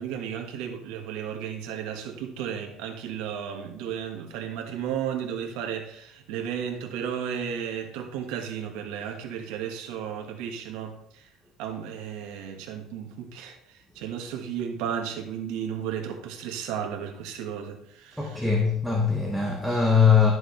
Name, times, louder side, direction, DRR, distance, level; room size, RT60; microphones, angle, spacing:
voice 1, 0.0-11.3 11.6-18.6, right 8 dB, 90° right, 1.5 m, -34 dB
voice 2, 18.2-20.3, left 6 dB, ahead, 1.0 m, -21 dB
12.0 x 6.4 x 3.3 m
cardioid pair, 170°, 0 cm